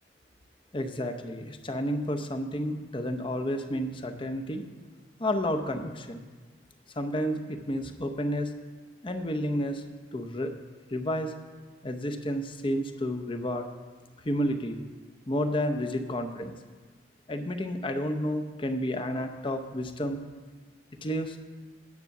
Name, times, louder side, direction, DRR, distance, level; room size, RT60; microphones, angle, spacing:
voice 1, 0.7-4.6 5.2-6.2 7.0-8.5 9.0-9.8 10.1-10.5 10.9-11.4 11.8-13.7 14.2-14.8 15.3-16.6 17.3-20.2 21.0-21.4, equal, 25° left, 6 dB, 0.7 m, -31 dB
9.6 x 8.2 x 6.0 m, 1.3 s
head